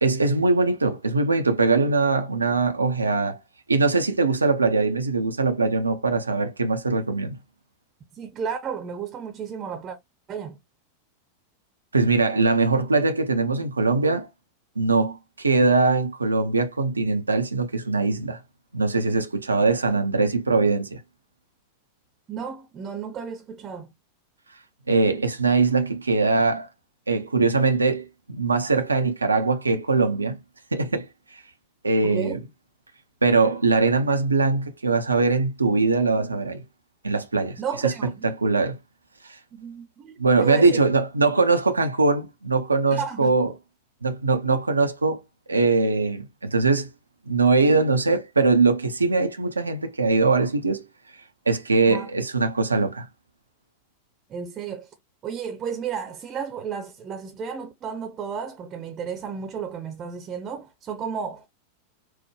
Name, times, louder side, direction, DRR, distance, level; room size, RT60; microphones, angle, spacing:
voice 1, 0.0-3.4 3.7-7.4 11.9-14.3 14.8-18.4 18.7-21.0 24.9-26.7 27.1-30.4 30.7-31.1 31.3-31.4 31.8-32.4 33.2-36.6 37.0-38.8 39.2-39.4 40.2-43.5 44.0-45.2 45.5-46.9 47.3-50.8 51.5-53.1, right 3 dB, 80° right, 0.5 m, -22 dB
voice 2, 8.1-10.0 10.3-10.6 22.3-23.9 32.0-32.4 37.6-38.3 39.5-40.8 42.9-43.4 44.4-44.6 51.9-52.1 54.3-54.9 55.2-61.5, right 7 dB, 25° right, 0.7 m, -33 dB
4.5 x 2.1 x 3.0 m
figure-of-eight pair, 90°, 0 cm